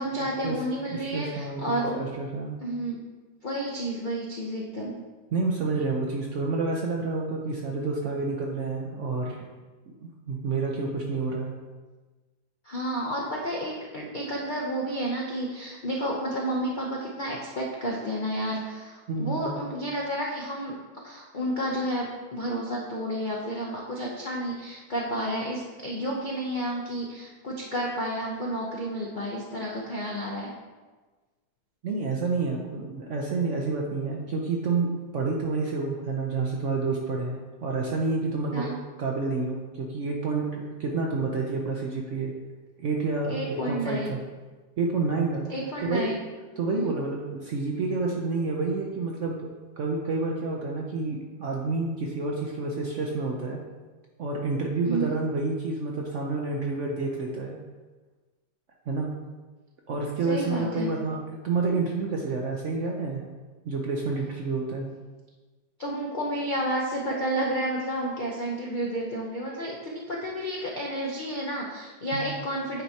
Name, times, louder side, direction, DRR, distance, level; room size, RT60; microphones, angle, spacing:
voice 1, 0.0-2.0 2.6-3.0 3.4-5.0 12.6-20.8 21.0-30.5 38.5-38.8 43.3-44.1 45.5-46.1 46.7-46.9 54.8-55.1 60.2-60.9 65.8-72.8, right 1 dB, 65° left, -3 dB, 0.4 m, -31 dB
voice 2, 1.0-2.6 5.3-9.4 9.9-11.5 19.1-19.6 31.8-38.7 39.0-42.3 42.8-44.2 44.8-45.4 45.8-46.0 46.6-49.4 49.8-53.6 54.2-57.6 58.9-59.1 59.9-61.2 61.4-63.2 63.6-64.9 72.1-72.2, right 3 dB, 65° right, -1 dB, 0.7 m, -29 dB
9.1 x 4.5 x 2.8 m, 1.3 s
omnidirectional pair, 1.9 m